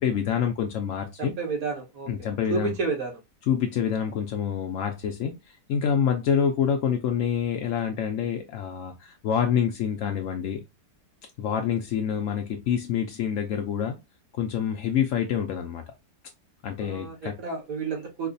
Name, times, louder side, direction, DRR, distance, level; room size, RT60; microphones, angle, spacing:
voice 1, 0.0-1.3 2.1-2.7 3.5-10.6 11.4-14.0 14.3-15.9 16.6-17.4, left 8 dB, 75° left, 0.7 m, -27 dB
voice 2, 1.2-2.1 2.5-3.2 16.8-18.3, right 4 dB, 55° right, 1.5 m, -31 dB
4.8 x 2.2 x 2.6 m
omnidirectional pair, 2.0 m